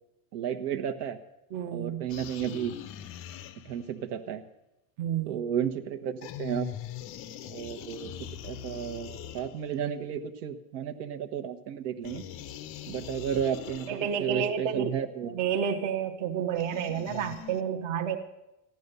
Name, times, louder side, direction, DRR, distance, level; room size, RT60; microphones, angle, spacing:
voice 1, 0.3-1.2 1.7-2.8 3.6-4.4 5.3-6.7 7.4-8.1 8.4-12.3 12.9-15.4, right 9 dB, 65° right, 7 dB, 1.2 m, -33 dB
voice 2, 1.5-2.1 5.0-5.4 13.9-14.9 15.3-18.2, right 8 dB, 35° right, 5 dB, 1.0 m, -30 dB
sound 1, 2.1-4.0 6.2-9.9 12.0-14.3 16.6-17.6, left 10 dB, 30° left, 0.5 m, -42 dB
15.0 x 10.5 x 6.8 m, 0.91 s
supercardioid pair, 150°, 48 cm